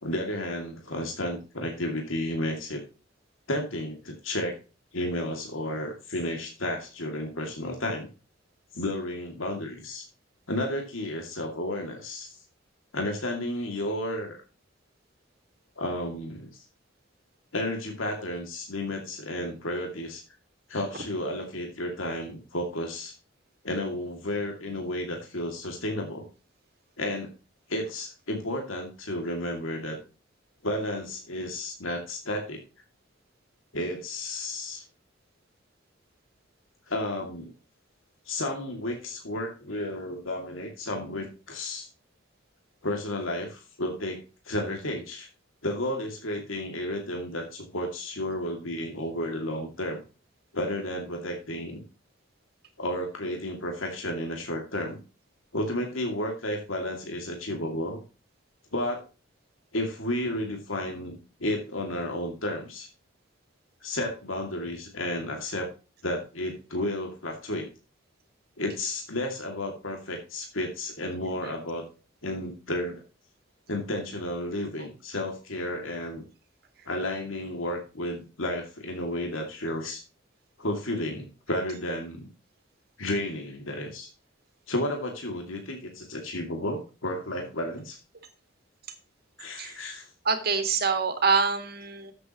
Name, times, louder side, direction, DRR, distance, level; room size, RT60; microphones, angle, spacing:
voice 1, 0.0-2.8 3.5-4.5 4.9-8.1 8.7-10.1 10.5-12.4 12.9-14.4 15.8-16.6 17.5-20.2 20.7-23.1 23.6-26.3 27.0-27.3 27.7-30.0 30.6-32.6 33.7-34.8 36.9-37.5 38.3-41.9 42.8-44.2 44.5-45.3 45.6-50.0 50.5-51.8 52.8-55.0 55.5-58.0 58.7-59.0 59.7-62.9 63.8-65.7 66.0-67.7 68.6-71.9 72.2-73.0 73.7-76.3 76.9-80.0 80.6-82.3 83.0-84.1 84.7-88.0 89.4-90.1, left 1 dB, 85° left, 2 dB, 2.4 m, -32 dB
voice 2, 90.3-92.1, right 5 dB, 50° right, 6 dB, 2.0 m, -25 dB
13.0 x 7.8 x 3.0 m, 0.33 s
head